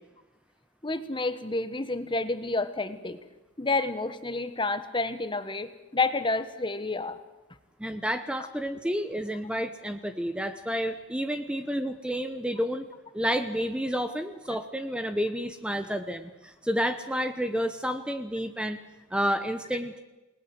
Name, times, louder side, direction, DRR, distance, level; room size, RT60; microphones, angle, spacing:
voice 1, 0.8-3.2 3.6-7.2, left 3 dB, 25° left, 11 dB, 1.4 m, -29 dB
voice 2, 7.8-12.9 13.1-18.8 19.1-20.0, equal, 5° right, 8 dB, 0.9 m, -30 dB
29.0 x 20.0 x 7.8 m, 1.1 s
head